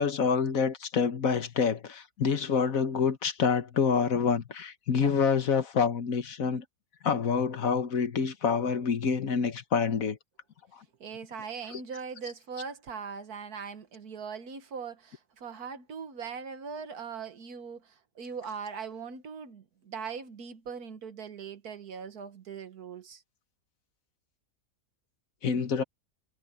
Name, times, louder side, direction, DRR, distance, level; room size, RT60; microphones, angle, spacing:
voice 1, 0.0-6.6 7.0-10.2 10.7-10.8 11.7-11.8 25.4-25.8, left 6 dB, 65° left, 1.7 m, -27 dB
voice 2, 11.0-23.2, right 6 dB, 75° right, 1.9 m, -40 dB
omnidirectional pair, 1.6 m